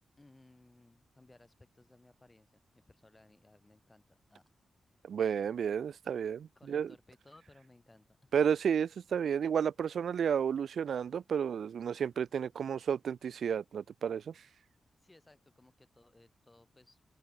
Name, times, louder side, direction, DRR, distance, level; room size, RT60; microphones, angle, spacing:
voice 1, 0.2-4.4 6.5-8.3 15.0-17.1, left 2 dB, 15° left, 4.7 m, -61 dB
voice 2, 5.1-6.9 8.3-14.3, right 7 dB, 75° right, 0.4 m, -32 dB
open air
wide cardioid pair, 115°, 0 cm